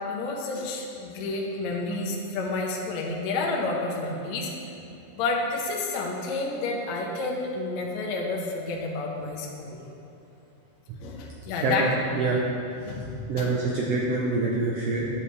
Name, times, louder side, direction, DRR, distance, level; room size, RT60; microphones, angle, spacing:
voice 1, 0.1-4.5 5.2-9.8 11.0-11.9 12.9-13.5, left 3 dB, 65° left, -1 dB, 2.0 m, -30 dB
voice 2, 11.6-12.4 13.3-15.1, right 3 dB, 85° right, -3 dB, 1.3 m, -26 dB
11.5 x 7.1 x 3.4 m, 2.8 s
omnidirectional pair, 3.8 m